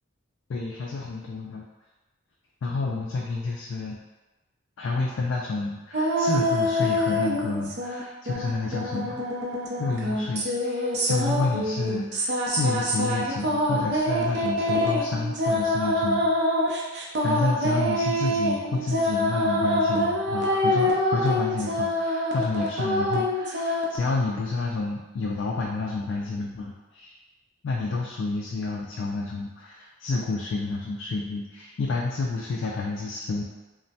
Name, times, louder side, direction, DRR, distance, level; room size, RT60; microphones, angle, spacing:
voice 1, 0.5-1.7 2.6-4.0 4.8-9.2 9.8-16.5 17.2-27.1 27.6-33.4, left 3 dB, 70° left, -2 dB, 0.3 m, -29 dB
sound 1, 5.9-8.0 8.3-24.0, left 1 dB, 55° right, 0.5 m, -25 dB
3.1 x 2.1 x 2.7 m, 1.1 s
head